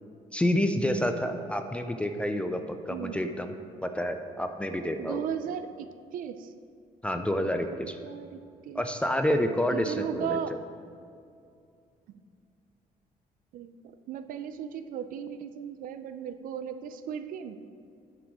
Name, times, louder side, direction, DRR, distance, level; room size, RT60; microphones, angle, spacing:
voice 1, 0.3-3.6 3.8-5.3 7.0-8.0 8.7-10.4, left 1 dB, 5° left, 6 dB, 0.3 m, -28 dB
voice 2, 2.9-3.2 5.0-5.9 6.1-6.5 7.6-8.8 9.7-10.5 13.5-13.7 14.1-17.6, right 8 dB, 60° right, 10 dB, 0.5 m, -36 dB
9.9 x 6.2 x 4.8 m, 2.4 s
cardioid pair, 175°, 16 cm